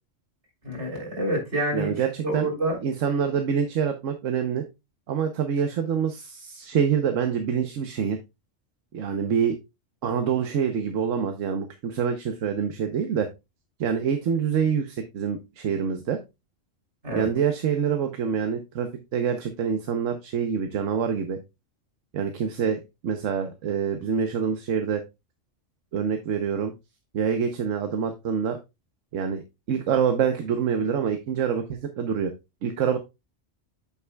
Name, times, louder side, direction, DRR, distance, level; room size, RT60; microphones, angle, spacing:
voice 1, 0.6-2.8 17.0-17.3, right 1 dB, 65° right, 3.7 m, -28 dB
voice 2, 1.7-2.5 2.8-4.6 5.1-8.2 8.9-9.6 10.0-13.3 13.8-16.2 17.1-21.4 22.1-25.0 25.9-26.7 27.1-28.6 29.1-29.4 29.7-32.3 32.6-33.0, right 7 dB, 85° right, 1.2 m, -26 dB
8.4 x 7.1 x 2.2 m
omnidirectional pair, 1.3 m